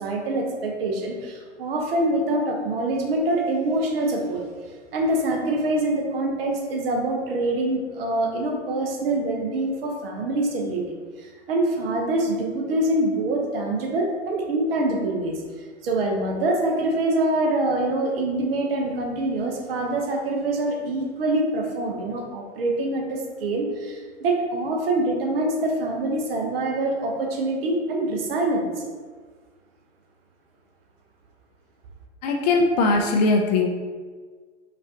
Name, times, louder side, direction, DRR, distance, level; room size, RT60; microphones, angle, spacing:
voice 1, 0.0-4.4 4.9-10.8 11.2-15.4 15.8-28.7, right 2 dB, 55° right, 1 dB, 0.9 m, -25 dB
voice 2, 32.2-33.7, left 3 dB, 35° left, 2 dB, 0.4 m, -20 dB
5.1 x 2.6 x 2.8 m, 1.5 s
hypercardioid pair, 110°, 35 cm